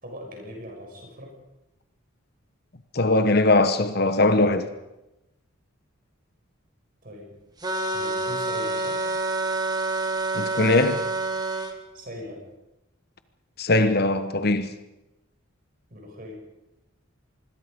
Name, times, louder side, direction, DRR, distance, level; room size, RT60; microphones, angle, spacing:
voice 1, 0.0-1.4 7.0-7.4 7.9-9.1 11.9-12.4 15.9-16.4, equal, 40° right, 6.4 m, -40 dB
voice 2, 2.9-4.7 10.3-11.0 13.6-14.7, left 2 dB, 50° left, 1.2 m, -21 dB
sound 1, 7.6-11.7, right 2 dB, 20° right, 1.7 m, -27 dB
26.0 x 21.5 x 5.3 m
head